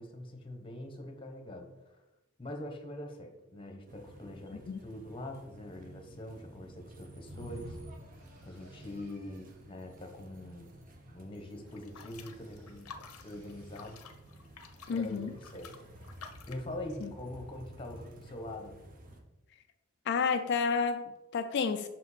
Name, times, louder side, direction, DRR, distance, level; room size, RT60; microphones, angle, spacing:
voice 1, 0.0-2.0 2.4-7.8 8.4-12.9 13.2-14.0 14.9-15.7 16.5-18.8, left 1 dB, 25° left, 4 dB, 0.9 m, -44 dB
sound 1, 3.9-19.2, right 1 dB, 40° right, 0.9 m, -53 dB
sound 2, 7.2-9.1 11.9-13.9, left 1 dB, 75° right, 2.0 m, -51 dB
sound 3, 11.7-16.7, left 6 dB, 90° left, 0.7 m, -51 dB
voice 2, 14.9-15.3 17.0-17.1 20.1-21.9, left 5 dB, 50° left, 8 dB, 0.3 m, -30 dB
5.9 x 5.0 x 4.1 m, 0.99 s
head